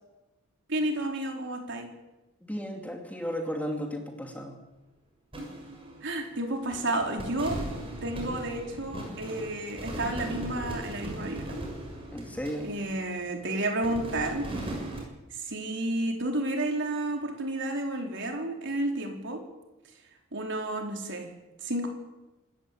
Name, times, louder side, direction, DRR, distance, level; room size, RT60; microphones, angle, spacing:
voice 1, 0.7-1.9 6.0-7.6 8.0-11.4 12.6-14.5 15.3-19.4 20.3-21.3 21.6-21.9, right 1 dB, 60° right, 2 dB, 4.3 m, -31 dB
voice 2, 2.4-4.6 12.1-12.7, equal, 5° left, 3 dB, 2.6 m, -34 dB
sound 1, 5.3-6.4 6.7-13.4 13.8-15.0, right 1 dB, 25° right, 6.7 m, -38 dB
26.5 x 14.0 x 8.6 m, 1.1 s
head